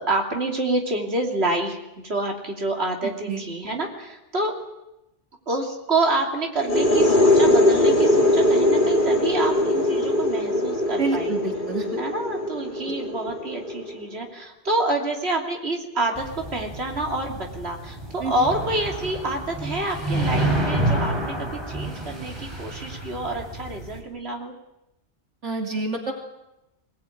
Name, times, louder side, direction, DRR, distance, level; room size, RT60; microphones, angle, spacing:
voice 1, 0.0-4.5 5.5-11.4 12.0-24.5, right 2 dB, 65° right, 1 dB, 3.3 m, -27 dB
sound 1, 6.6-14.1, left 1 dB, 45° left, 2.4 m, -21 dB
voice 2, 11.0-12.0 18.2-18.3 25.4-26.1, right 3 dB, 85° right, 2 dB, 3.0 m, -28 dB
sound 2, 16.2-24.0, right 1 dB, 20° right, 4.5 m, -29 dB
23.0 x 18.5 x 9.2 m, 0.91 s
omnidirectional pair, 1.2 m